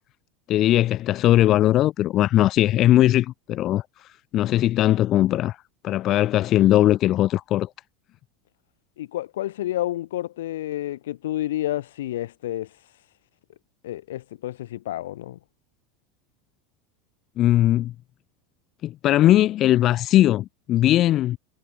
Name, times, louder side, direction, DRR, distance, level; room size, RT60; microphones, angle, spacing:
voice 1, 0.5-3.8 4.3-5.6 5.8-7.7 17.4-17.9 18.8-21.4, left 13 dB, 45° left, 2.5 m, -19 dB
voice 2, 9.0-12.7 13.8-15.4, left 14 dB, 80° left, 5.5 m, -30 dB
hypercardioid pair, 100°, 0 cm